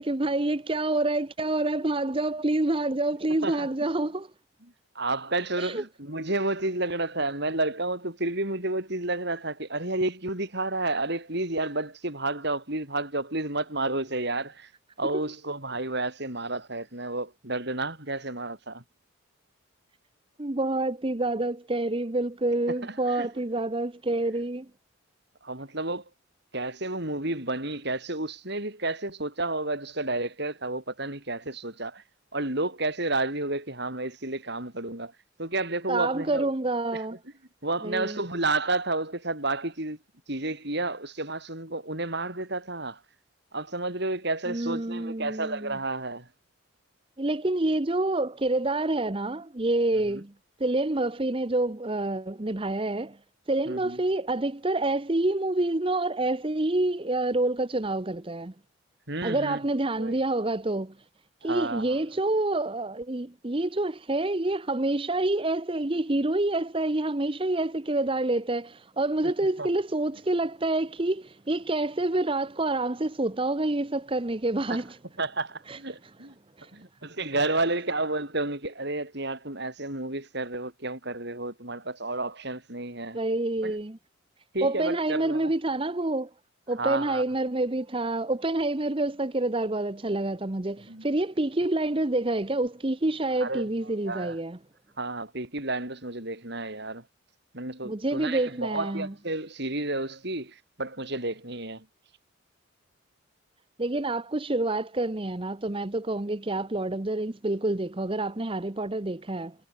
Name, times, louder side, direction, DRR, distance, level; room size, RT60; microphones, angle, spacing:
voice 1, 0.0-4.3 5.6-5.8 20.4-24.7 35.9-37.2 37.8-38.2 44.5-45.8 47.2-50.3 50.6-53.2 53.5-58.5 59.2-61.0 61.4-75.0 75.7-75.8 76.6-76.7 83.1-84.0 84.6-86.3 86.7-94.6 97.8-99.1 103.8-109.5, right 2 dB, 25° right, 0.9 m, -27 dB
voice 2, 4.9-14.7 15.0-18.8 22.8-23.3 25.4-26.1 26.5-32.0 32.3-35.1 35.4-36.5 36.9-37.0 37.6-40.0 40.3-43.0 43.5-46.3 50.1-50.2 53.7-54.0 59.1-59.6 60.0-60.2 61.4-62.0 69.2-69.3 69.6-69.7 74.7-74.8 75.2-76.4 76.7-83.2 83.6-83.7 84.5-85.5 86.8-87.2 90.9-91.0 93.4-93.7 94.0-94.4 95.0-97.1 97.5-101.9, right 2 dB, 55° right, 6.1 m, -31 dB
head